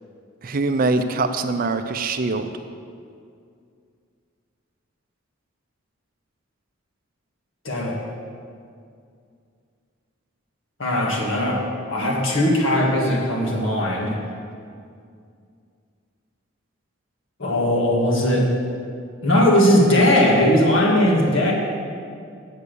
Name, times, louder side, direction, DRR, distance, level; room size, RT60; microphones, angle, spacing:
voice 1, 0.4-2.5, right 3 dB, 45° right, 9 dB, 0.4 m, -23 dB
voice 2, 7.6-8.0 10.8-11.6 11.9-14.1 17.4-18.5 19.2-21.5, left 1 dB, 65° left, -2 dB, 1.9 m, -19 dB
8.3 x 7.3 x 6.8 m, 2.3 s
head